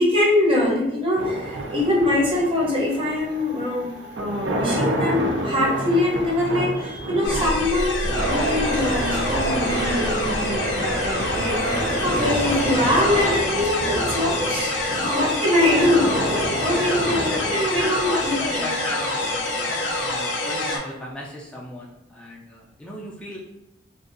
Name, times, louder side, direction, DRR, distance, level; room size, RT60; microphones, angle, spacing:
voice 1, 0.0-3.9 4.2-18.7, left 1 dB, 30° right, -4 dB, 0.7 m, -23 dB
sound 1, 1.2-20.2, right 1 dB, 90° right, 0.4 m, -31 dB
sound 2, 7.2-20.8, left 2 dB, 85° left, 0.4 m, -27 dB
sound 3, 8.1-13.3, right 1 dB, 70° right, 0.9 m, -26 dB
voice 2, 16.4-23.4, left 1 dB, 5° left, -5 dB, 0.4 m, -36 dB
2.6 x 2.3 x 2.5 m, 0.89 s
head